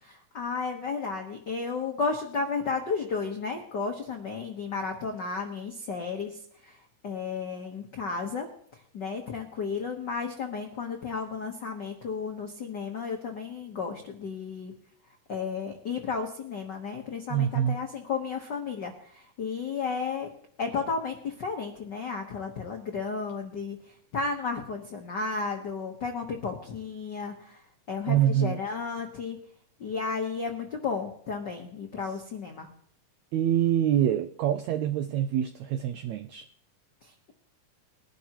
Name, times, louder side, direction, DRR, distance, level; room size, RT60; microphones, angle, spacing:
voice 1, 0.0-8.5 8.7-14.7 15.3-20.3 20.6-29.4 29.8-32.7 37.0-37.3, left 5 dB, 75° left, 3 dB, 1.0 m, -33 dB
voice 2, 17.3-17.8 28.1-28.6 33.3-36.4, right 10 dB, 85° right, 9 dB, 1.6 m, -25 dB
21.5 x 11.5 x 3.0 m, 0.62 s
omnidirectional pair, 3.9 m